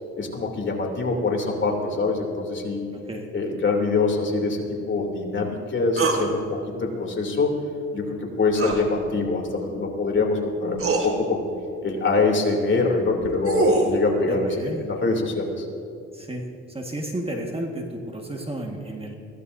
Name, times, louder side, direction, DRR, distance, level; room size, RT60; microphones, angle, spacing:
voice 1, 0.2-2.9 3.3-7.5 7.9-11.4 11.8-15.6, left 3 dB, 40° left, 0 dB, 3.0 m, -24 dB
voice 2, 2.9-3.3 14.3-14.8 16.1-19.2, right 1 dB, 20° right, 1 dB, 1.7 m, -32 dB
sound 1, 6.0-6.2 8.5-8.8 10.2-10.3 10.8-11.1 13.1-13.9, right 3 dB, 45° right, 2.3 m, -23 dB
23.0 x 16.0 x 2.7 m, 2.6 s
cardioid pair, 90°, 30 cm